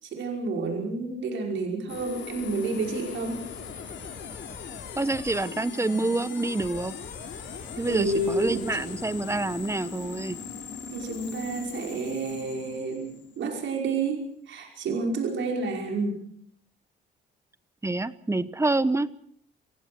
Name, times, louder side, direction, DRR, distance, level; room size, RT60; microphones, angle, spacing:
voice 1, 0.0-3.4 7.8-8.8 10.9-16.2, right 3 dB, 70° right, 2 dB, 5.5 m, -30 dB
sound 1, 1.9-13.8, left 6 dB, 65° left, 4.2 m, -40 dB
voice 2, 5.0-6.9 7.8-10.4 17.8-19.1, right 2 dB, 15° right, 16 dB, 1.1 m, -27 dB
27.5 x 16.0 x 6.2 m, 0.63 s
cardioid pair, 90°, 20 cm